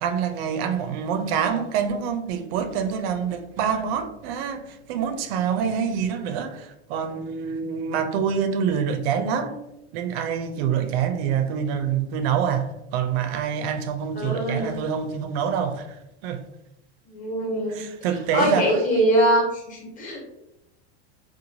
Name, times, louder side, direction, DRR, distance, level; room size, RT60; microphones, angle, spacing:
voice 1, 0.0-9.6 9.9-16.0 16.2-16.4 17.7-19.0, right 7 dB, 65° right, 0.5 m, -26 dB
voice 2, 14.2-14.7 17.1-17.8 18.3-20.3, equal, 25° left, 1.1 m, -23 dB
3.0 x 2.2 x 2.7 m
supercardioid pair, 125°, 33 cm